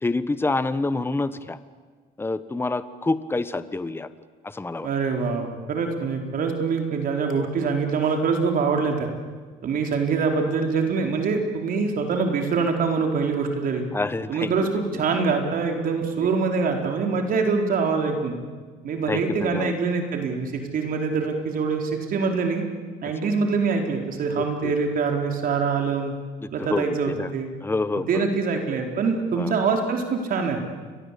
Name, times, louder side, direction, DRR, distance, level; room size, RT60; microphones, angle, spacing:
voice 1, 0.0-1.6 2.2-4.1 4.4-4.9 13.9-14.5 19.1-19.7 23.2-23.3 24.4-24.7 26.6-27.3 27.6-28.3 29.3-29.5, left 3 dB, 15° left, 13 dB, 1.2 m, -27 dB
voice 2, 4.8-9.1 9.6-13.8 14.3-18.4 18.8-22.6 23.0-26.1 26.5-27.5 28.1-30.6, right 5 dB, 55° right, 3 dB, 4.5 m, -24 dB
29.5 x 23.0 x 8.6 m, 1.5 s
cardioid pair, 110°, 17 cm